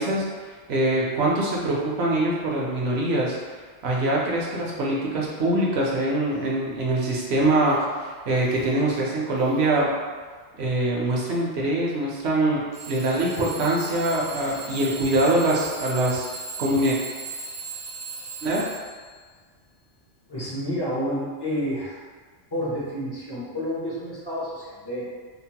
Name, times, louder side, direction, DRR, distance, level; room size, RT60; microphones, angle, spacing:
voice 1, 0.0-3.4 3.8-9.9 10.6-16.3 16.6-17.0 18.4-18.6, right 1 dB, 65° right, -3 dB, 0.8 m, -24 dB
Alarm / Clock, 7.7-7.8 8.4-8.8 9.4-9.8 10.6-10.7 12.7-19.1, right 4 dB, 55° left, 0.9 m, -37 dB
voice 2, 20.3-22.0 22.5-25.0, equal, 35° left, -8 dB, 0.4 m, -29 dB
2.9 x 2.0 x 2.7 m, 1.5 s
omnidirectional pair, 1.3 m